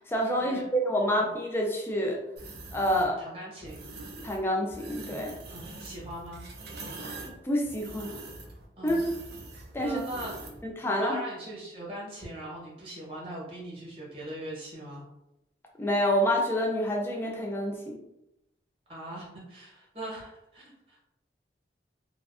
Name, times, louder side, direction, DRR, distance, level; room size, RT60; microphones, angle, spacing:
voice 1, 0.1-2.2 2.7-3.2 4.2-5.3 7.3-8.1 8.8-9.1 9.7-10.0 10.6-11.2 15.8-18.0, equal, 10° left, 0 dB, 0.3 m, -28 dB
sound 1, 2.4-3.1 3.7-4.4 4.7-10.6, right 2 dB, 60° right, 0.4 m, -43 dB
voice 2, 2.9-3.9 5.5-6.4 8.8-9.0 9.8-10.4 10.9-15.0 18.9-21.0, right 1 dB, 30° right, -6 dB, 0.8 m, -41 dB
2.5 x 2.2 x 2.4 m, 0.88 s
head